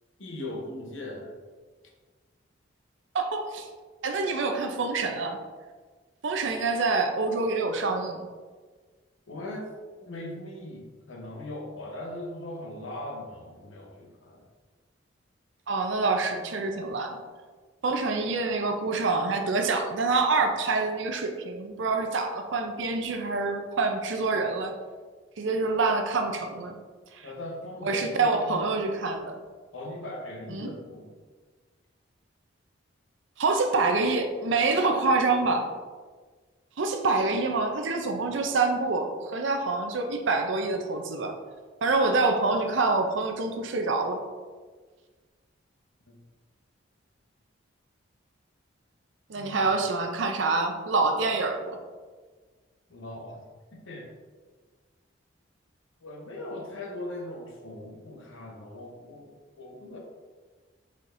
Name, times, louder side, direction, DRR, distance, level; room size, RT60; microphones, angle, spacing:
voice 1, 0.2-1.3 9.3-9.7 10.0-14.5 27.2-28.7 29.7-31.1 46.0-46.2 49.3-49.6 52.9-53.4 53.7-54.1 56.0-60.0, left 1 dB, 75° left, 0 dB, 0.9 m, -39 dB
voice 2, 3.1-3.7 4.0-5.4 6.2-8.3 15.7-17.2 17.8-24.7 25.4-26.8 27.1-27.3 27.8-29.4 30.5-30.7 33.4-35.6 36.8-41.3 41.8-44.2 49.3-51.8, right 3 dB, 70° right, 4 dB, 0.5 m, -26 dB
4.8 x 4.2 x 2.6 m, 1.4 s
head